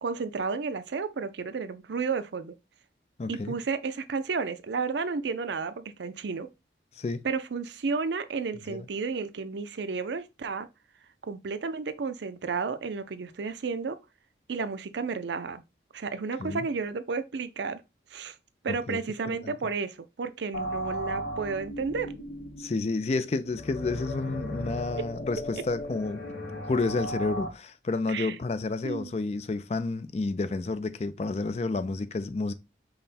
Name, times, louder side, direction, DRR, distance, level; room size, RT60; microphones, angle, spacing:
voice 1, 0.0-2.5 3.3-6.5 7.2-10.7 11.2-14.0 14.5-15.6 15.9-17.8 18.1-18.4 18.6-22.1 25.0-25.1 28.1-28.4 28.8-29.1, right 4 dB, 80° right, 0.5 m, -32 dB
voice 2, 3.2-3.6 7.0-7.2 8.7-8.9 16.4-16.7 18.7-19.0 19.3-19.5 22.6-26.2 26.6-32.5, left 3 dB, 35° left, 0.3 m, -30 dB
sound 1, 20.5-27.5, equal, 85° left, 1.1 m, -36 dB
5.5 x 2.2 x 4.1 m
head